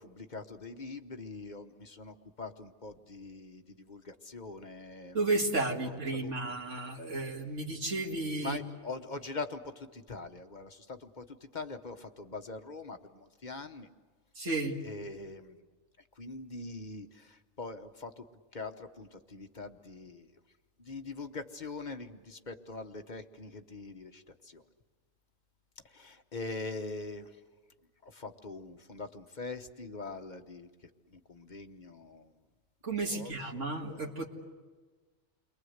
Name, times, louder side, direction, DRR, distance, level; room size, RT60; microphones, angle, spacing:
voice 1, 0.0-5.3 5.6-6.3 8.4-13.9 14.8-15.6 16.2-18.2 18.5-20.3 20.8-24.6 25.8-27.4 28.0-30.7 31.1-32.3 33.1-33.7 33.9-34.0, left 3 dB, 35° left, 7 dB, 1.1 m, -43 dB
voice 2, 5.1-8.6 14.4-14.8 32.8-34.3, right 2 dB, 65° right, 0 dB, 2.5 m, -33 dB
29.5 x 23.0 x 7.9 m, 1.3 s
omnidirectional pair, 1.4 m